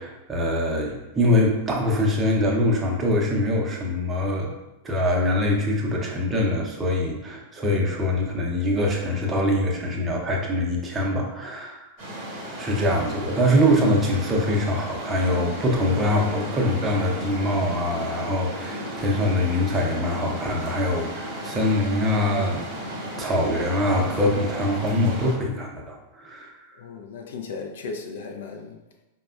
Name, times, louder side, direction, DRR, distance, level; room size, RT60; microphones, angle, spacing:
voice 1, 0.0-4.5 4.8-11.8 12.6-22.6 23.2-26.5, left 1 dB, 20° right, 0 dB, 0.6 m, -23 dB
sound 1, 12.0-25.3, equal, 40° right, 1.0 m, -34 dB
voice 2, 26.8-28.8, left 4 dB, 60° left, 3 dB, 0.4 m, -36 dB
4.8 x 2.1 x 2.3 m, 0.95 s
figure-of-eight pair, 90°, 0 cm